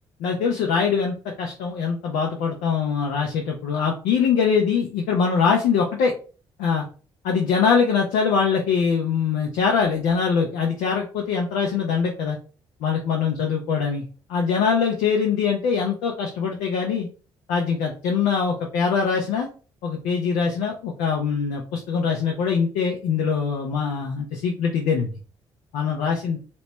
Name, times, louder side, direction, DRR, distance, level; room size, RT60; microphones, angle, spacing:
voice 1, 0.2-6.1 6.6-6.9 7.2-12.4 12.8-14.0 14.3-17.1 17.5-19.5 19.8-25.1 25.7-26.4, left 6 dB, 65° left, 0 dB, 0.6 m, -23 dB
3.1 x 3.0 x 3.1 m, 0.37 s
figure-of-eight pair, 45°, 13 cm